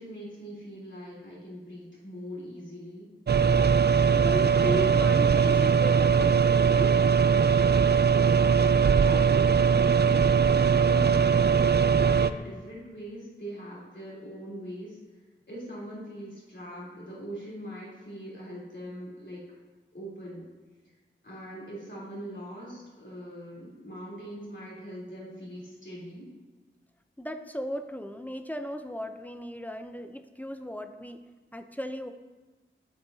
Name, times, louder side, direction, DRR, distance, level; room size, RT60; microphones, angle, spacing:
voice 1, 0.0-3.1 9.0-15.0 15.5-19.4 19.9-20.5 20.8-20.9 21.2-26.3, equal, 65° left, -7 dB, 3.5 m, -41 dB
sound 1, 3.3-12.3, right 6 dB, 55° right, 0.4 m, -21 dB
voice 2, 4.1-7.0 27.2-31.2 31.5-32.1, equal, 10° left, 7 dB, 0.6 m, -36 dB
12.5 x 8.7 x 2.8 m, 1.3 s
wide cardioid pair, 55°, 20 cm